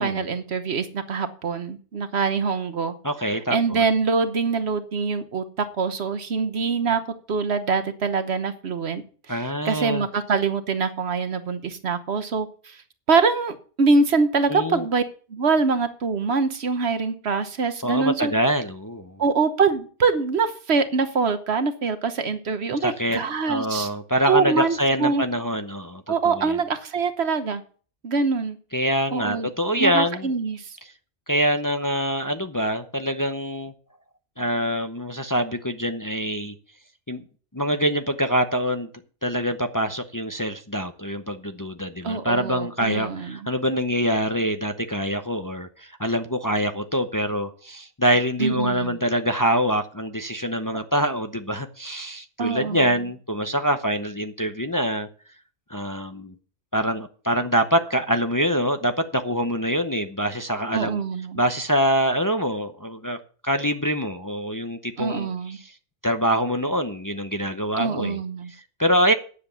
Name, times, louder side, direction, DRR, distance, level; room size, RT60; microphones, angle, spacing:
voice 1, 0.0-2.9 3.5-7.0 7.3-9.0 9.3-12.8 13.1-15.0 15.3-18.3 19.2-23.9 24.3-25.3 26.1-27.6 28.0-28.6 29.1-29.5 29.8-30.7 42.0-43.5 48.4-49.0 52.4-52.9 60.7-61.4 65.0-65.6 67.8-68.5, right 4 dB, 65° right, 10 dB, 1.3 m, -24 dB
voice 2, 3.0-3.9 9.3-10.1 14.5-14.9 17.8-19.2 22.7-23.2 23.5-26.6 28.7-30.3 31.3-33.7 34.4-36.5 37.1-37.2 37.5-38.9 39.2-55.1 55.7-56.3 56.7-61.0 61.3-63.2 63.4-65.7 66.0-68.2 68.5-69.1, equal, 20° left, 7 dB, 0.7 m, -25 dB
9.8 x 7.8 x 6.9 m, 0.41 s
omnidirectional pair, 1.2 m